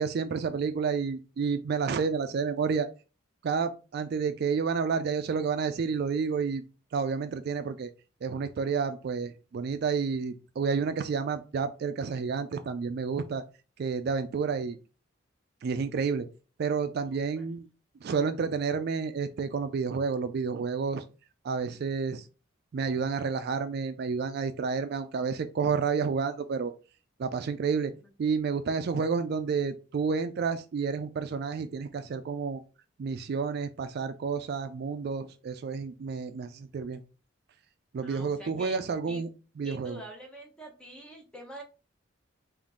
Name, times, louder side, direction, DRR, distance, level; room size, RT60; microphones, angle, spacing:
voice 1, 0.0-2.9 3.4-6.6 6.9-7.9 8.2-13.4 13.8-14.8 15.6-16.3 16.6-17.7 18.0-21.0 21.4-22.3 22.7-26.7 27.2-27.9 28.2-32.6 33.0-37.0 37.9-39.3 39.6-40.0, right 5 dB, 55° right, 9 dB, 0.3 m, -30 dB
voice 2, 17.0-17.5 38.0-38.8 39.1-39.2 39.6-41.6, right 1 dB, 5° left, 0 dB, 0.9 m, -45 dB
3.7 x 2.5 x 3.6 m, 0.33 s
head